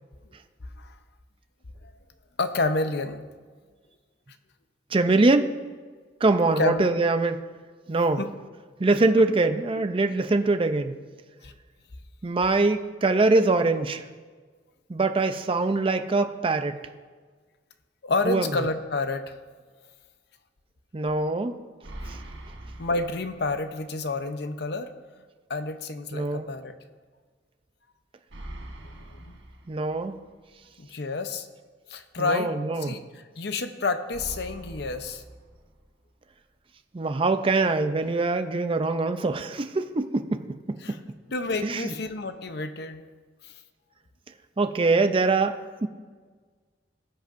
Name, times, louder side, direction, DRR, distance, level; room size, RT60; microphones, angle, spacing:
voice 1, 2.4-3.3 6.6-6.9 8.2-8.3 11.4-11.5 18.0-19.4 22.8-24.9 25.5-26.7 28.8-29.3 30.8-31.5 31.9-32.5 32.8-35.2 40.8-41.0 41.3-43.0 43.4-43.5, left 3 dB, 65° left, 8 dB, 0.7 m, -29 dB
voice 2, 4.9-5.5 6.2-7.4 7.9-8.2 8.8-10.9 12.2-14.0 14.9-16.8 18.2-18.5 20.9-21.6 26.1-26.5 29.7-30.2 32.2-33.0 36.9-41.0 41.6-41.9 44.6-45.9, right 3 dB, 30° right, 8 dB, 0.5 m, -23 dB
sound 1, 21.8-23.9 24.2-24.3 28.3-30.3 34.1-36.1, right 1 dB, 80° right, 1.3 m, -43 dB
18.5 x 8.0 x 2.6 m, 1.5 s
head